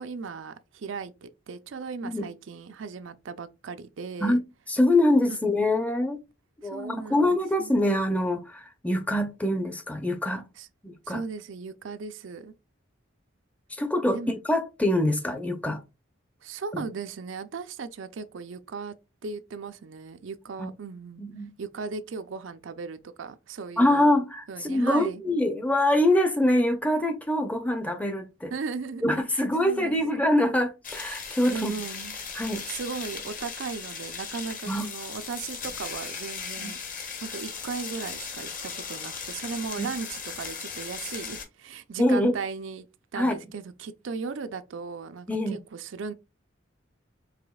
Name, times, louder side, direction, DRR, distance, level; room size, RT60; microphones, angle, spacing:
voice 1, 0.0-4.4 5.3-5.4 6.6-7.8 10.6-10.7 11.1-12.5 14.1-14.4 16.4-18.9 19.2-21.2 21.6-24.1 24.5-25.2 28.5-30.0 31.5-32.2 32.7-36.8 37.2-42.9 43.1-46.1, right 5 dB, 75° right, 0.5 m, -37 dB
voice 2, 4.7-6.2 6.6-10.4 10.8-11.2 13.7-14.2 14.5-15.8 16.7-16.8 20.6-20.7 21.2-21.5 23.8-28.5 29.0-31.7 32.4-32.7 34.7-34.9 36.6-36.7 39.8-39.9 42.0-42.3 43.2-43.3 45.3-45.6, left 1 dB, 5° left, 0.5 m, -24 dB
sound 1, 30.8-41.4, left 6 dB, 45° left, 1.0 m, -37 dB
4.9 x 3.4 x 2.3 m
head